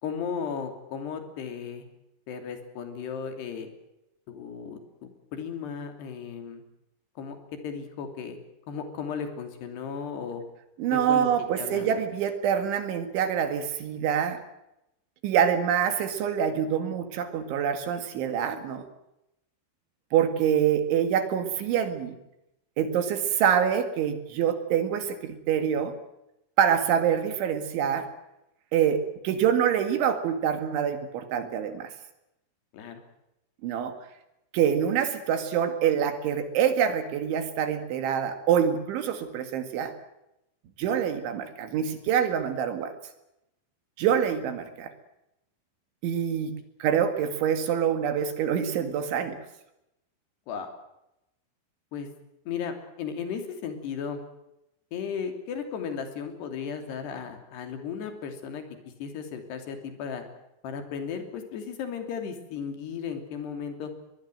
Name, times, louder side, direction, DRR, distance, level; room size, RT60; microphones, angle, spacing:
voice 1, 0.0-1.9 2.3-3.7 4.3-6.6 7.2-7.4 7.6-8.4 8.7-10.4 10.9-12.0 32.7-33.0 50.5-50.7 51.9-52.1 52.5-54.2 54.9-58.6 59.0-60.2 60.6-63.9, left 6 dB, 55° left, 6 dB, 4.7 m, -35 dB
voice 2, 10.8-14.4 15.2-18.8 20.1-22.2 22.8-25.9 26.6-28.1 28.7-31.9 33.6-33.9 34.5-39.9 40.8-42.9 44.0-44.9 46.0-46.6 46.8-49.4, right 8 dB, 70° right, 8 dB, 4.2 m, -25 dB
22.5 x 21.5 x 7.8 m, 0.87 s
omnidirectional pair, 5.9 m